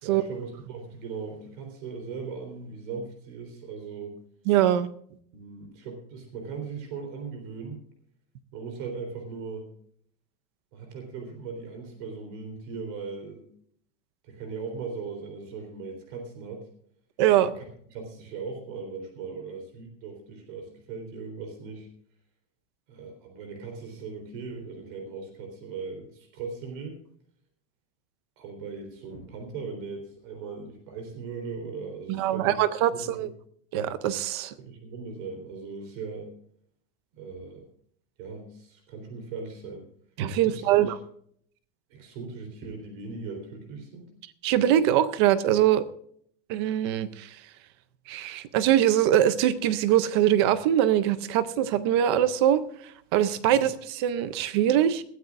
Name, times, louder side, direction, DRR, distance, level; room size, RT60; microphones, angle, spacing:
voice 1, 0.0-4.2 5.3-7.8 8.5-9.7 10.7-13.5 14.2-16.6 17.5-17.6 17.9-21.9 22.9-27.0 28.4-32.6 32.9-33.2 34.6-36.3 37.1-37.6 38.2-39.9 40.4-40.9 41.9-44.1 53.5-53.6, right 4 dB, 40° right, 4 dB, 3.7 m, -38 dB
voice 2, 4.5-4.9 17.2-17.5 32.1-33.3 33.7-34.5 40.2-41.0 44.4-45.8 46.5-47.3 48.1-52.6 53.1-55.0, right 11 dB, 25° right, 15 dB, 0.4 m, -23 dB
21.0 x 13.5 x 2.5 m, 0.64 s
supercardioid pair, 175°, 37 cm